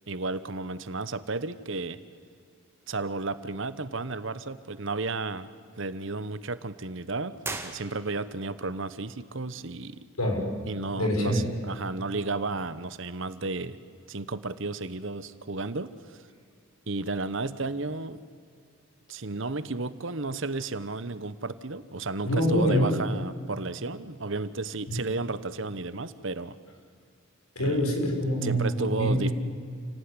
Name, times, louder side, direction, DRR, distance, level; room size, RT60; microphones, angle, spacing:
voice 1, 0.1-2.0 2.9-5.5 5.8-10.0 10.7-13.8 14.1-16.2 16.9-18.2 19.1-26.6 27.6-27.8 28.4-29.3, right 3 dB, 60° right, 14 dB, 1.0 m, -33 dB
sound 1, 7.4-8.5, right 3 dB, 10° right, 1.9 m, -38 dB
voice 2, 10.2-10.6 11.0-11.5 22.3-22.9 24.9-25.0 27.6-29.3, equal, 85° left, 2 dB, 5.8 m, -25 dB
29.0 x 17.5 x 9.8 m, 2.2 s
head